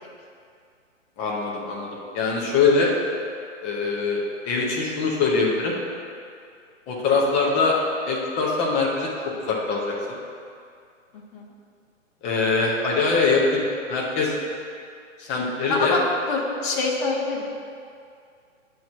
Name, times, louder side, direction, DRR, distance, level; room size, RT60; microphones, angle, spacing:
voice 1, 1.2-2.9 3.6-5.8 6.9-7.8 8.1-9.1 9.4-10.2 12.2-14.3 15.2-16.0, left 4 dB, 15° left, -3 dB, 0.8 m, -23 dB
voice 2, 15.7-16.0 16.3-17.4, left 3 dB, 40° left, -2 dB, 1.4 m, -25 dB
9.1 x 3.1 x 6.5 m, 2.3 s
hypercardioid pair, 140°, 39 cm